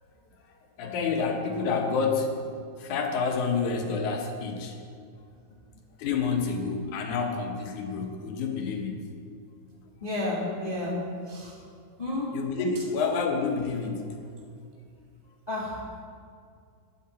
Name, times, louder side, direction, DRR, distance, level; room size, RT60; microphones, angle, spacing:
voice 1, 0.8-2.3 2.8-4.8 6.0-9.1 12.3-14.1, left 5 dB, 85° left, 3 dB, 2.6 m, -28 dB
voice 2, 10.0-11.0 11.3-11.5 12.0-12.3 15.5-15.8, left 2 dB, 20° left, -4 dB, 1.4 m, -31 dB
12.0 x 11.5 x 4.2 m, 2.3 s
omnidirectional pair, 3.3 m